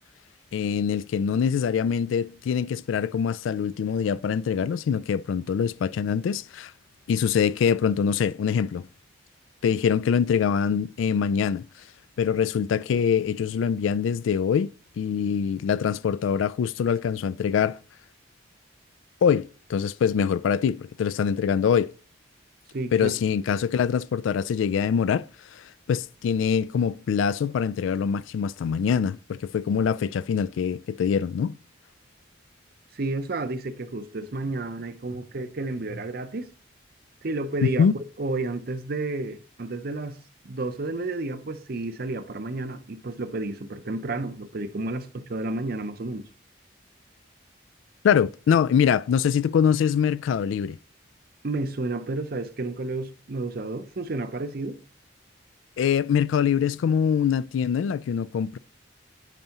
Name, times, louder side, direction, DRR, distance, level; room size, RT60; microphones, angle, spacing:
voice 1, 0.5-6.7 7.1-8.9 9.6-11.7 12.2-17.8 19.2-21.9 22.9-25.3 25.5-31.6 37.6-37.9 48.0-50.8 55.8-58.6, left 7 dB, 80° left, 0.3 m, -24 dB
voice 2, 22.7-23.1 32.9-36.5 37.2-40.2 40.4-46.3 51.4-54.8, right 2 dB, 50° right, 0.6 m, -31 dB
9.1 x 5.4 x 2.9 m
head